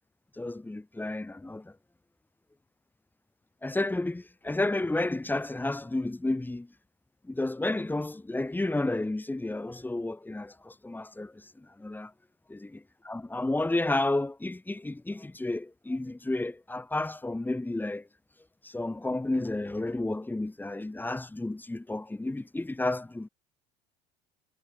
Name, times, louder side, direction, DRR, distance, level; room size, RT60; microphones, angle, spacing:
voice 1, 0.3-1.7 3.6-6.7 7.3-12.1 12.5-12.7 13.0-18.1 18.3-23.3, left 2 dB, 10° left, 3.7 m, -31 dB
hypercardioid pair, 70°, 19 cm